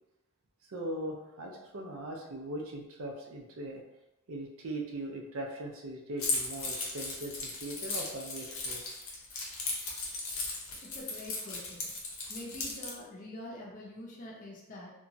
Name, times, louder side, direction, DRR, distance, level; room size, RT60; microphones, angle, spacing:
voice 1, 0.7-3.8 4.3-8.8, right 1 dB, 85° right, 1 dB, 0.5 m, -40 dB
Keys jangling, 6.2-12.9, left 3 dB, 75° left, 0.7 m, -36 dB
voice 2, 10.8-11.9 12.3-14.9, left 1 dB, 40° left, -4 dB, 0.5 m, -45 dB
2.8 x 2.2 x 2.6 m, 0.94 s
head